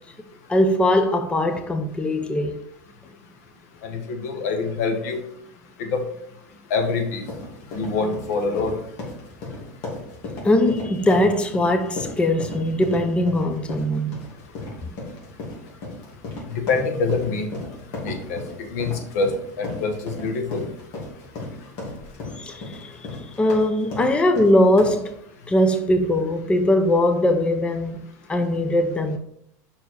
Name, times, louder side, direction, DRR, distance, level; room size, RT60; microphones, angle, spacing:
voice 1, 0.5-2.6 10.4-14.2 22.4-25.2 25.5-28.0 28.3-29.2, left 1 dB, 10° left, 0.6 m, -21 dB
voice 2, 3.8-5.2 5.8-6.0 6.7-7.3 7.7-8.8 16.5-17.5 18.0-18.4 18.7-19.3 19.6-20.6, left 4 dB, 75° left, 1.4 m, -25 dB
sound 1, 7.1-25.1, left 2 dB, 55° left, 2.9 m, -35 dB
5.6 x 4.6 x 4.8 m
supercardioid pair, 120°, 9 cm